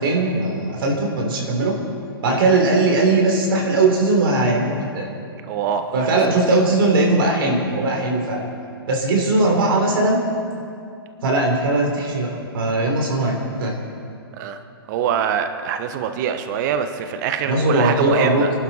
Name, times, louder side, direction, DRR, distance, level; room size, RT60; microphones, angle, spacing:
voice 1, 0.0-1.8 2.2-5.1 5.9-8.4 8.9-10.2 11.2-13.8 17.5-18.5, right 2 dB, 65° right, 0 dB, 3.5 m, -19 dB
voice 2, 5.5-6.6 14.3-14.6 14.9-18.5, right 8 dB, 50° right, 8 dB, 1.1 m, -25 dB
24.5 x 12.0 x 4.3 m, 2.4 s
hypercardioid pair, 120°, 13 cm